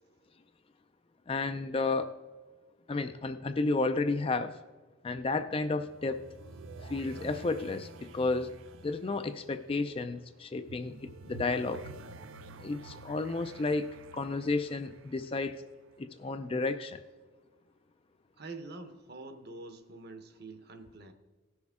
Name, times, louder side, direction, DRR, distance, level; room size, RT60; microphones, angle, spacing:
voice 1, 1.3-2.1 2.9-4.6 5.0-6.2 6.8-8.5 8.8-11.8 12.6-15.6 16.0-17.0, left 3 dB, 25° left, 9 dB, 0.3 m, -32 dB
sound 1, 5.4-16.2, right 3 dB, 75° right, 0.5 m, -49 dB
voice 2, 18.4-21.1, right 2 dB, 50° right, 7 dB, 0.9 m, -46 dB
16.5 x 6.2 x 3.6 m, 1.3 s
head